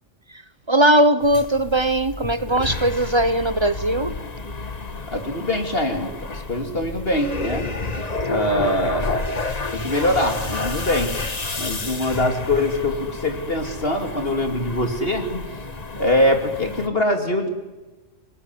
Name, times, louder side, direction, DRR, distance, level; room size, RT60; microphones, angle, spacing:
voice 1, 0.7-4.2, right 1 dB, 25° right, 0.9 m, -19 dB
sound 1, 1.2-16.9, left 3 dB, 30° left, 1.6 m, -30 dB
voice 2, 5.1-7.7 8.3-9.1 9.7-11.1 11.6-15.5 16.0-17.5, left 1 dB, 45° left, 2.9 m, -23 dB
27.0 x 19.0 x 9.8 m
omnidirectional pair, 1.4 m